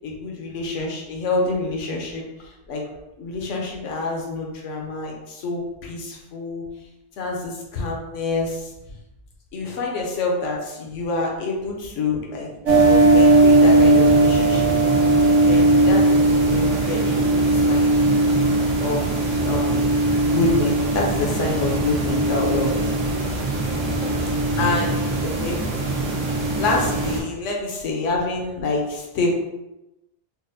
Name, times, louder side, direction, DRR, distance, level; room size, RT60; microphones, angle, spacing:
voice 1, 0.0-2.8 3.2-6.6 7.2-8.7 9.5-14.7 15.5-17.9 18.8-19.9 20.2-22.9 24.6-25.0 25.4-25.6 26.6-29.4, left 3 dB, 85° left, -1 dB, 1.0 m, -27 dB
sound 1, 12.7-27.2, right 2 dB, 85° right, 1.1 m, -19 dB
voice 2, 23.3-25.1, right 2 dB, 55° right, -3 dB, 0.5 m, -34 dB
4.1 x 2.0 x 2.6 m, 0.95 s
omnidirectional pair, 1.2 m